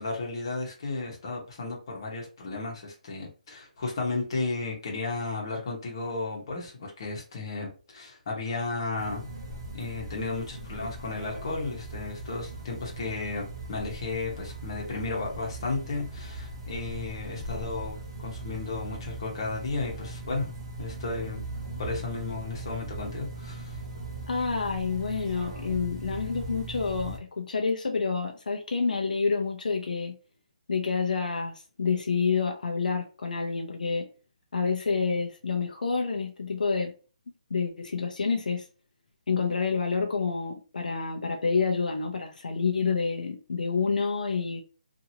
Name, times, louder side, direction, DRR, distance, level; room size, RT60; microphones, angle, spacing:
voice 1, 0.0-9.3 9.7-20.5 20.8-21.4 21.8-23.8, left 3 dB, 35° left, 1.0 m, -34 dB
sound 1, 9.0-27.2, right 2 dB, 35° right, 0.8 m, -39 dB
voice 2, 24.3-30.2 30.7-34.1 34.5-36.9 37.3-38.7 39.3-44.6, left 5 dB, 75° left, 0.6 m, -28 dB
2.8 x 2.6 x 2.7 m
hypercardioid pair, 175°, 4 cm